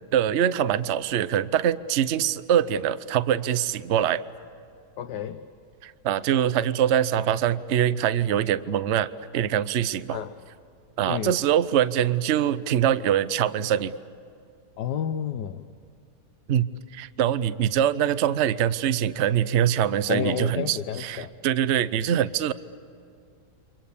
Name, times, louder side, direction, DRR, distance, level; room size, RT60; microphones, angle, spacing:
voice 1, 0.1-4.2 5.8-10.2 11.0-14.0 16.5-22.5, right 10 dB, 55° right, 14 dB, 0.9 m, -24 dB
voice 2, 5.0-5.4 10.1-10.3 11.1-11.4 14.8-15.7 20.1-21.3, left 9 dB, 80° left, 7 dB, 1.5 m, -30 dB
29.5 x 25.0 x 7.1 m, 2.5 s
omnidirectional pair, 1.8 m